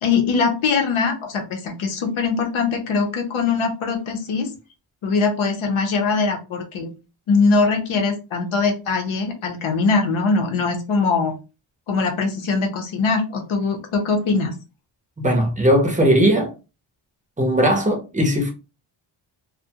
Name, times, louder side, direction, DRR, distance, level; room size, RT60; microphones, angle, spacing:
voice 1, 0.0-4.5 5.0-6.9 7.3-11.4 11.9-14.5, left 4 dB, 85° left, 0.8 m, -21 dB
voice 2, 15.2-16.5 17.4-18.5, equal, 15° right, 0.5 m, -18 dB
2.3 x 2.2 x 2.7 m
wide cardioid pair, 170°, 47 cm